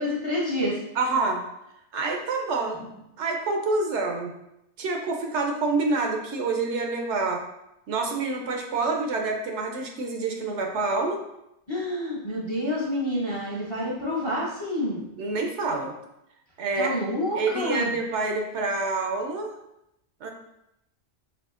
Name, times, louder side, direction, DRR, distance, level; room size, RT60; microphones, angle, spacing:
voice 1, 0.0-0.8 11.7-15.0 16.8-17.9, left 1 dB, 30° left, -5 dB, 0.6 m, -28 dB
voice 2, 1.0-1.4 1.9-2.9 3.2-4.3 4.8-7.4 7.9-11.2 15.2-15.9 16.6-16.9 17.4-19.6 20.2-20.3, right 3 dB, 70° right, 2 dB, 0.9 m, -27 dB
4.8 x 3.1 x 2.4 m, 0.84 s
omnidirectional pair, 1.3 m